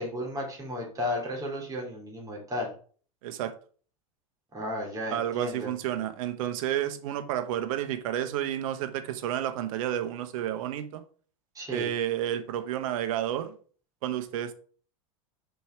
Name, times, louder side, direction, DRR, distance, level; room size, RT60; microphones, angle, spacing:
voice 1, 0.0-2.7 4.5-5.7 11.5-11.9, left 1 dB, 20° right, 2.8 m, -34 dB
voice 2, 3.2-3.5 5.1-11.0 11.7-13.5 14.0-14.5, right 11 dB, 70° right, 1.0 m, -31 dB
5.2 x 4.5 x 5.0 m
hypercardioid pair, 105°, 18 cm